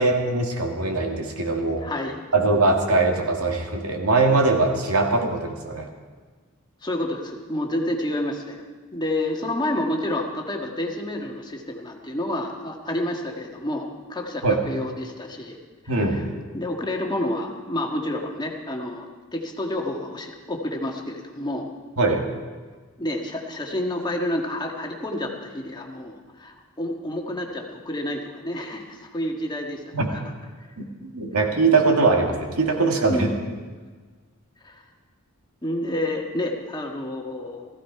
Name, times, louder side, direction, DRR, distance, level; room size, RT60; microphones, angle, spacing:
voice 1, 0.0-1.9 2.3-5.9 14.4-14.6 15.9-16.3 22.0-22.3 29.9-30.1 30.8-33.3, right 3 dB, 90° right, 2 dB, 1.9 m, -21 dB
voice 2, 1.8-2.1 6.8-8.6 8.9-15.6 16.5-21.7 23.0-29.8 30.1-30.2 33.1-33.3 34.6-34.8 35.6-37.7, left 1 dB, 20° left, 1 dB, 1.6 m, -29 dB
16.0 x 15.0 x 4.7 m, 1.4 s
head